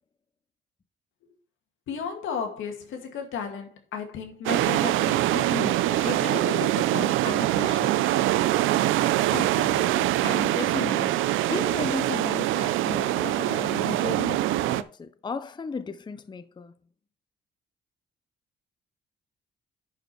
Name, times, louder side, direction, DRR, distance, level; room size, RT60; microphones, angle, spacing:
voice 1, 1.9-8.0, left 6 dB, 80° left, 2.3 m, -34 dB
sound 1, 4.5-14.8, right 15 dB, 90° right, 0.5 m, -24 dB
voice 2, 9.3-11.2 11.5-16.7, left 4 dB, 25° left, 0.6 m, -35 dB
10.5 x 5.2 x 4.5 m
cardioid pair, 90°, 20 cm